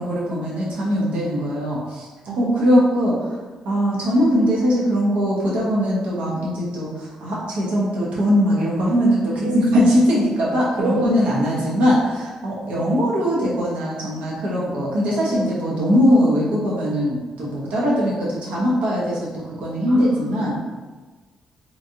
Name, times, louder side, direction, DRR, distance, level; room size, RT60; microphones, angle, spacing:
voice 1, 0.0-2.1 2.4-3.4 3.6-20.6, equal, 75° right, -5 dB, 1.0 m, -21 dB
voice 2, 2.3-3.3 9.4-9.7 10.8-11.3 11.6-11.7 19.9-20.8, right 3 dB, 55° right, -4 dB, 0.4 m, -28 dB
3.1 x 2.7 x 2.6 m, 1.3 s
cardioid pair, 150°, 2 cm